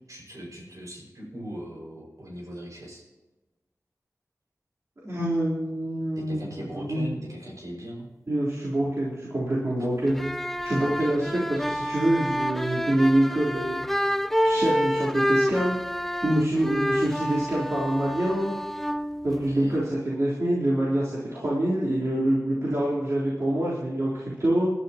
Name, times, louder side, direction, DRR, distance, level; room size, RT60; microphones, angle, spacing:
voice 1, 0.1-3.1 6.2-8.1 9.8-9.9 10.8-11.3 19.3-19.8, right 1 dB, 70° right, -2 dB, 5.8 m, -40 dB
voice 2, 5.0-7.1 8.3-10.3 10.6-13.8 14.4-18.5 19.2-24.7, right 1 dB, 55° right, -8 dB, 3.9 m, -26 dB
sound 1, 10.1-19.9, equal, 5° left, 0.5 m, -28 dB
21.0 x 12.5 x 3.0 m, 1.1 s
wide cardioid pair, 45°, 6 cm